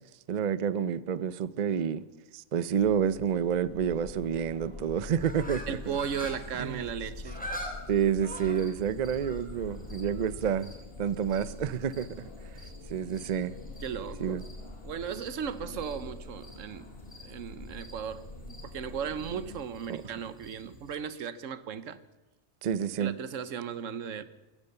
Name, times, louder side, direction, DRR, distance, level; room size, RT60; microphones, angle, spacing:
voice 1, 0.3-2.0 2.3-5.8 6.6-6.8 7.9-12.6 12.9-13.5 14.2-14.4 19.9-20.0 22.6-23.2, right 8 dB, 50° right, 0.5 m, -29 dB
sound 1, 2.8-10.5, left 4 dB, 30° left, 1.2 m, -51 dB
sound 2, 3.7-19.6, left 2 dB, 50° left, 1.9 m, -45 dB
sound 3, 5.2-21.0, equal, 5° left, 3.1 m, -47 dB
voice 2, 5.7-7.4 13.8-14.5 14.8-16.9 17.2-22.0 23.0-24.2, right 7 dB, 80° right, 1.2 m, -36 dB
15.5 x 13.5 x 6.8 m
omnidirectional pair, 1.3 m